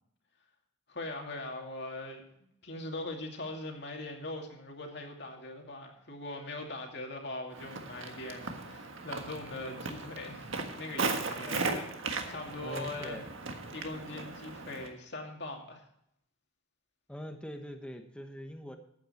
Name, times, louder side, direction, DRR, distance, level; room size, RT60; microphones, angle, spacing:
voice 1, 0.9-2.2 2.6-13.2 13.7-15.9, left 2 dB, 55° left, 2 dB, 2.5 m, -41 dB
Walk footsteps, 7.5-14.9, right 3 dB, 70° right, 1.5 m, -37 dB
voice 2, 11.4-11.8 12.6-13.3 17.1-18.8, equal, 5° left, 5 dB, 1.1 m, -43 dB
13.5 x 8.8 x 4.3 m, 0.75 s
head